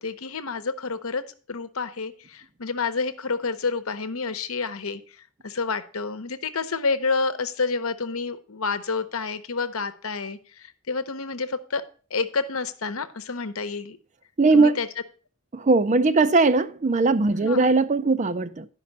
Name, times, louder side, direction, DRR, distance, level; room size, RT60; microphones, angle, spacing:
voice 1, 0.0-5.0 5.4-11.8 12.1-14.0 14.5-14.9 17.5-17.7, left 4 dB, 70° left, 0.9 m, -29 dB
voice 2, 14.4-14.8 15.5-18.7, right 3 dB, 35° right, 0.5 m, -19 dB
11.5 x 5.4 x 5.3 m
head